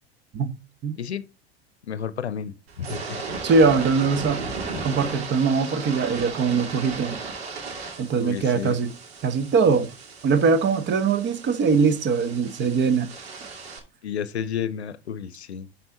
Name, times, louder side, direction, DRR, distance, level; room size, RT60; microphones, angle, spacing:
voice 1, 1.8-3.4 4.3-4.4 8.2-8.8 14.0-15.7, left 8 dB, 90° left, 0.7 m, -32 dB
sound 1, 2.7-13.8, right 4 dB, 70° right, 2.6 m, -36 dB
voice 2, 3.4-4.4 4.8-7.2 8.0-8.9 9.2-9.9 10.2-13.1, right 5 dB, 35° right, 1.2 m, -21 dB
11.5 x 4.4 x 3.8 m
hypercardioid pair, 80°, 32 cm